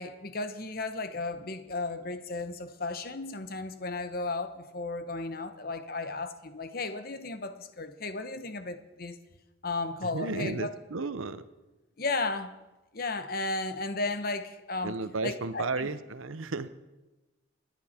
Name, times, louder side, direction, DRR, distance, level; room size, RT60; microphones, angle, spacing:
voice 1, 0.0-9.2 9.6-10.7 12.0-12.5 12.9-15.0 15.2-15.9, left 3 dB, 45° left, 9 dB, 1.1 m, -34 dB
voice 2, 10.1-11.4 14.8-16.7, right 3 dB, 85° right, 12 dB, 0.8 m, -33 dB
27.0 x 10.5 x 4.4 m, 1.1 s
head